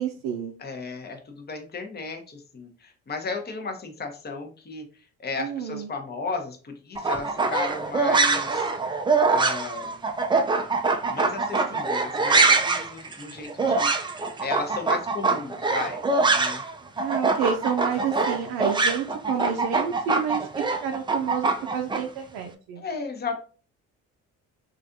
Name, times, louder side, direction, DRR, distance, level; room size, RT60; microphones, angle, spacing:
voice 1, 0.0-0.5 5.4-5.9 17.0-22.8, right 8 dB, 80° right, 3 dB, 0.5 m, -29 dB
voice 2, 0.6-8.7 9.3-10.0 11.0-13.9 14.4-16.0 16.3-16.6 22.8-23.4, left 4 dB, 25° left, 4 dB, 0.8 m, -34 dB
sound 1, 7.0-16.7 17.0-22.0, right 3 dB, 15° right, 0.3 m, -23 dB
3.2 x 2.5 x 2.5 m, 0.39 s
hypercardioid pair, 55°, 40 cm